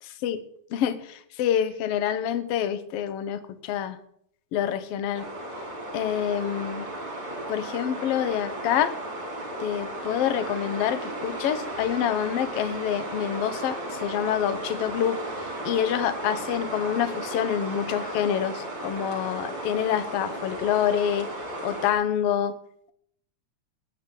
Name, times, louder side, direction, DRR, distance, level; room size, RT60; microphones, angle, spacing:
voice 1, 0.0-0.4 0.7-4.0 4.5-5.3 5.9-6.9 7.5-9.0 9.6-21.3 21.6-22.6, left 9 dB, 65° left, 12 dB, 1.6 m, -27 dB
sound 1, 5.1-21.9, right 1 dB, 45° right, 3.9 m, -35 dB
18.0 x 9.8 x 3.8 m, 0.70 s
omnidirectional pair, 3.5 m